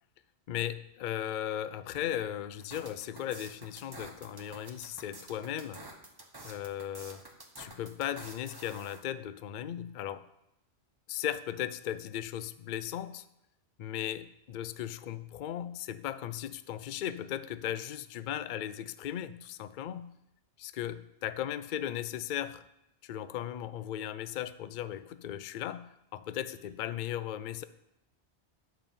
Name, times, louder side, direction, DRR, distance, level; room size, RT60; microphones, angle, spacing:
voice 1, 0.5-5.8 6.4-7.2 7.6-10.2 11.1-13.2 13.8-20.1 20.6-22.6 23.0-27.6, left 11 dB, 55° left, 13 dB, 0.6 m, -37 dB
sound 1, 2.6-9.0, right 1 dB, 20° right, 1.2 m, -49 dB
10.5 x 5.4 x 7.1 m, 0.85 s
omnidirectional pair, 1.1 m